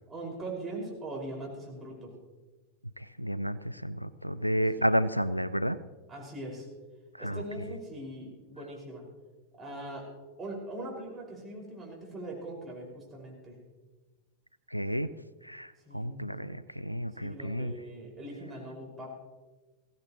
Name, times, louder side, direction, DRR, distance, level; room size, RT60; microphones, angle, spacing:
voice 1, 0.1-2.1 4.7-4.9 6.1-6.7 7.2-9.0 9.6-10.1 10.4-13.6 15.9-16.3 17.2-19.1, right 1 dB, 15° right, -2 dB, 5.3 m, -41 dB
voice 2, 3.0-5.8 7.2-7.4 14.7-15.1 15.4-17.7, equal, 90° left, 16 dB, 0.4 m, -31 dB
21.0 x 16.0 x 3.0 m, 1.2 s
figure-of-eight pair, 90°, 0 cm